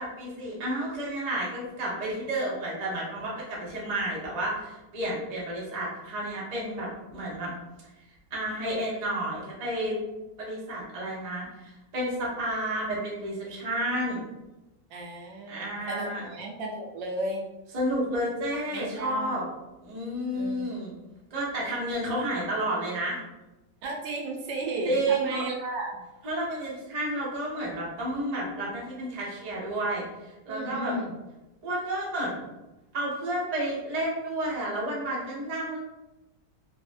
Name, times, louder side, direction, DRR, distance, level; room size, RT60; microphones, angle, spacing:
voice 1, 0.0-7.5 8.3-10.0 10.4-14.2 15.5-16.2 17.7-19.4 19.8-20.9 21.3-23.2 24.8-25.4 26.2-30.0 30.5-30.9 31.6-32.4 32.9-35.8, right 1 dB, 65° right, -5 dB, 0.4 m, -31 dB
voice 2, 14.9-17.5 18.7-19.4 20.3-20.6 23.8-26.0 30.5-31.2, right 2 dB, 85° right, 0 dB, 1.3 m, -34 dB
3.3 x 2.0 x 2.5 m, 1.0 s
omnidirectional pair, 1.9 m